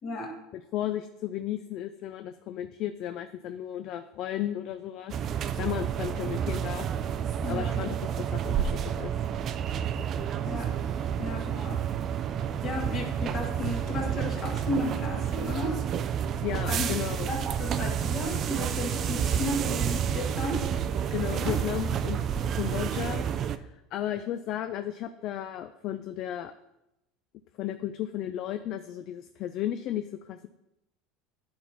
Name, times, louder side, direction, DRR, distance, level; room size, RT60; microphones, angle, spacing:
voice 1, 0.0-0.3 7.4-7.8 10.4-10.7 11.2-11.8 12.2-12.3 12.6-15.8 16.7-17.0 17.3-20.7 21.3-21.6, left 1 dB, 30° left, 2 dB, 1.5 m, -34 dB
voice 2, 0.5-5.1 5.6-6.9 7.5-9.1 16.4-17.3 21.1-22.2 22.5-26.5 27.6-30.5, left 12 dB, 45° left, 9 dB, 0.3 m, -34 dB
sound 1, 5.1-23.6, right 8 dB, 35° right, 0.4 m, -30 dB
10.5 x 4.3 x 4.1 m, 0.89 s
cardioid pair, 150°, 0 cm